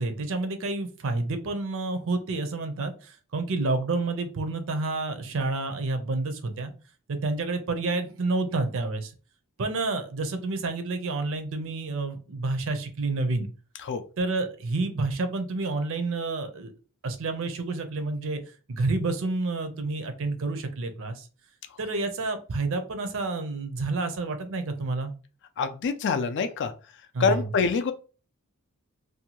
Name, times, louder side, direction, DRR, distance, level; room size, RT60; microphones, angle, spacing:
voice 1, 0.0-6.7 7.1-9.1 9.6-13.5 14.2-16.7 17.0-18.4 18.7-21.3 21.8-25.1 27.1-27.5, right 3 dB, 60° right, 8 dB, 0.5 m, -29 dB
voice 2, 25.6-26.7 27.2-27.9, left 5 dB, 55° left, 8 dB, 0.4 m, -25 dB
2.7 x 2.2 x 2.9 m, 0.35 s
head